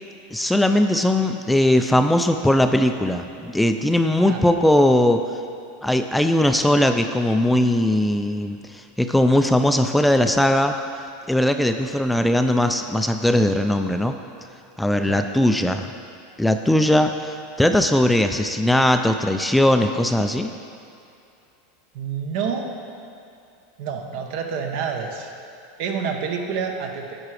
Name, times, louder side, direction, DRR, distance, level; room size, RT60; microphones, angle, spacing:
voice 1, 0.3-5.2 5.8-10.7 11.3-14.2 14.8-15.9 16.4-20.5, left 1 dB, 5° left, 6 dB, 0.4 m, -19 dB
voice 2, 21.9-22.7 23.8-25.3 25.8-27.2, right 6 dB, 65° right, 3 dB, 1.0 m, -28 dB
10.5 x 4.8 x 4.9 m, 2.6 s
supercardioid pair, 115°, 0 cm